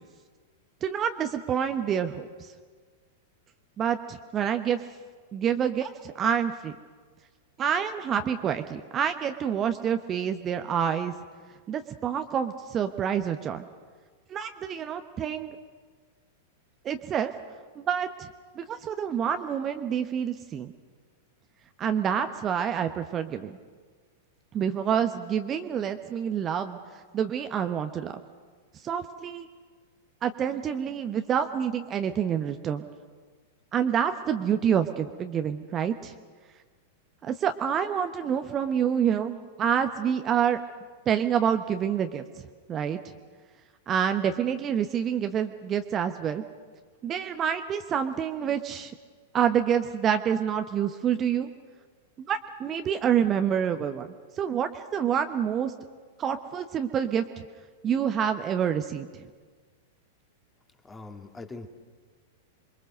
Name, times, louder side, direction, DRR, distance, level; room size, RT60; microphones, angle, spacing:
voice 1, 0.8-2.5 3.8-4.8 5.3-6.7 7.6-11.1 11.7-13.6 14.3-15.6 16.8-17.3 17.8-18.3 18.6-20.7 21.8-23.6 24.5-26.8 27.1-28.1 28.8-29.5 30.2-32.8 33.7-36.1 37.2-40.6 41.1-42.2 42.7-43.0 43.9-46.4 47.0-48.9 49.3-51.5 52.2-55.7 56.2-57.2 57.8-59.1, right 8 dB, 25° right, 7 dB, 1.1 m, -27 dB
voice 2, 60.8-61.7, left 3 dB, 15° left, 5 dB, 2.2 m, -41 dB
28.0 x 23.5 x 6.6 m, 1.5 s
figure-of-eight pair, 95°, 0 cm